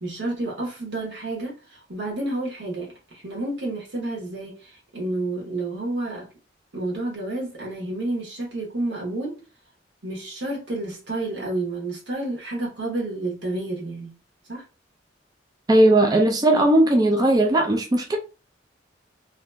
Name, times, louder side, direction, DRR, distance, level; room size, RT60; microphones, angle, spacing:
voice 1, 0.0-6.3 6.7-9.4 10.0-14.1 14.5-14.6, right 2 dB, 75° right, 1.0 m, -30 dB
voice 2, 15.7-18.2, right 1 dB, 20° right, 0.3 m, -18 dB
2.8 x 2.5 x 2.2 m
head